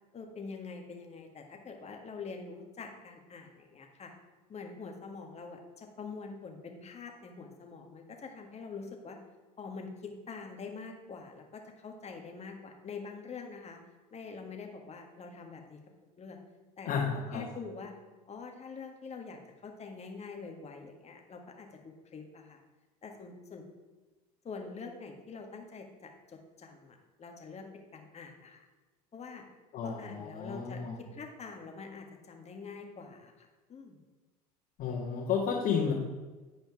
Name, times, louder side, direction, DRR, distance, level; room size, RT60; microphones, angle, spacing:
voice 1, 0.1-4.1 4.5-9.2 9.6-13.8 14.1-15.8 16.2-16.4 16.8-17.0 17.3-17.9 18.3-22.6 23.0-23.6 24.4-27.7 27.9-28.7 29.1-29.4 29.8-34.0, left 4 dB, 35° left, 3 dB, 1.6 m, -45 dB
voice 2, 16.9-17.4 29.7-31.0 34.8-35.9, left 6 dB, 50° left, -7 dB, 2.0 m, -32 dB
9.6 x 5.1 x 4.8 m, 1.2 s
hypercardioid pair, 75°, 20 cm